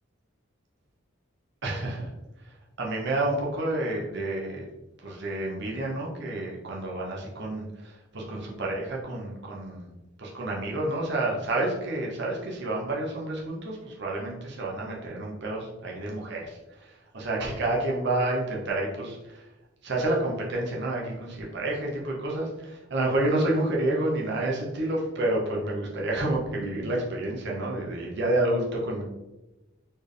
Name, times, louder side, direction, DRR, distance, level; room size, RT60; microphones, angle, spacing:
voice 1, 1.6-2.1 2.4-4.7 5.0-9.9 10.2-19.5 19.8-29.0, right 1 dB, 55° right, -2 dB, 0.9 m, -29 dB
4.4 x 3.4 x 3.3 m, 1.0 s
head